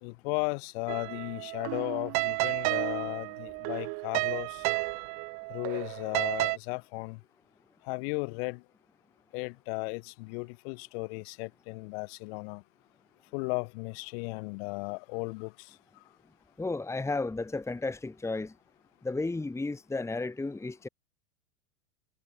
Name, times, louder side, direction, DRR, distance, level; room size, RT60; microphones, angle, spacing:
voice 1, 0.0-4.6 5.5-7.2 7.8-8.6 9.3-12.6 13.3-15.8, left 32 dB, 60° left, 3.9 m, -35 dB
sound 1, 0.9-6.6, right 32 dB, 50° right, 1.0 m, -32 dB
voice 2, 16.6-18.5 19.0-20.9, left 3 dB, 10° left, 1.6 m, -33 dB
hypercardioid pair, 95°, 35 cm